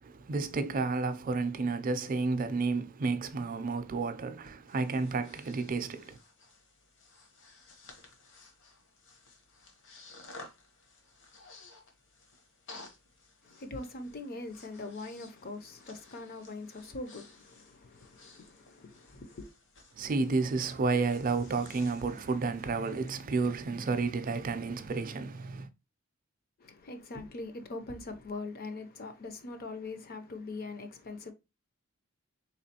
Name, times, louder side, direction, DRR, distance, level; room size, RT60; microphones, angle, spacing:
voice 1, 0.0-6.2 19.9-25.7, right 4 dB, 40° right, 0.4 m, -31 dB
Breathing, 4.4-23.2, left 3 dB, 60° left, 1.0 m, -55 dB
voice 2, 13.4-19.5 26.6-31.3, left 3 dB, 45° left, 0.5 m, -42 dB
3.5 x 3.0 x 2.8 m
head